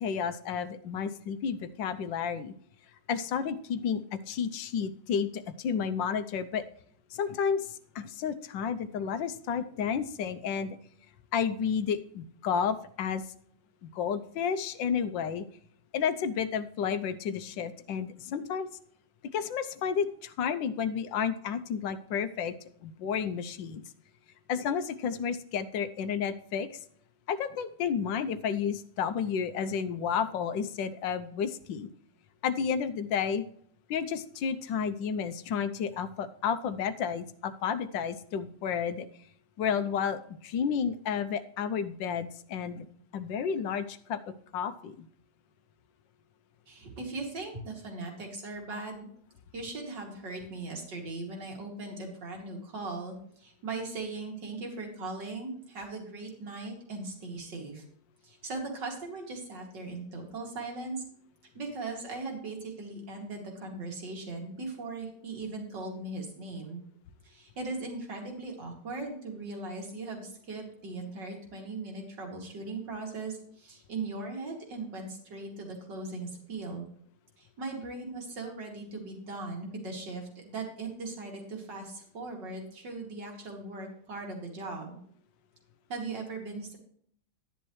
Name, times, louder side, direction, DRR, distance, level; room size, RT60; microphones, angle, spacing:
voice 1, 0.0-2.5 3.1-6.6 7.1-7.7 7.9-10.8 11.3-13.2 13.8-15.5 15.9-18.7 19.3-22.5 22.8-23.8 24.5-26.7 27.3-31.9 32.4-33.4 33.9-39.1 39.6-42.9 43.1-44.2 44.5-45.1, left 7 dB, 90° left, 11 dB, 1.5 m, -31 dB
voice 2, 46.7-49.1 49.5-57.8 58.2-61.0 61.5-66.8 67.2-76.8 77.4-85.0 85.9-86.8, right 3 dB, 75° right, 1 dB, 3.2 m, -39 dB
12.5 x 10.0 x 3.2 m, 0.63 s
omnidirectional pair, 1.9 m